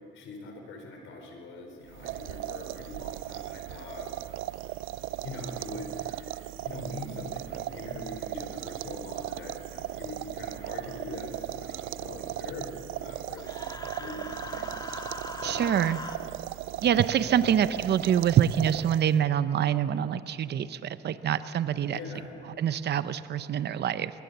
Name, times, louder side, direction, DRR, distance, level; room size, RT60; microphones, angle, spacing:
voice 1, 0.1-4.1 5.2-15.2 15.4-15.7 17.3-17.6 21.9-22.3, left 2 dB, 80° left, 3 dB, 4.5 m, -42 dB
sound 1, 1.9-19.3, right 15 dB, 85° right, 0.4 m, -37 dB
Human voice, 13.4-16.2, left 2 dB, 20° left, 1.7 m, -40 dB
voice 2, 15.4-16.0 16.8-22.0 22.6-24.1, right 9 dB, 60° right, 13 dB, 0.8 m, -25 dB
21.5 x 19.0 x 6.9 m, 2.5 s
cardioid pair, 90°, 20 cm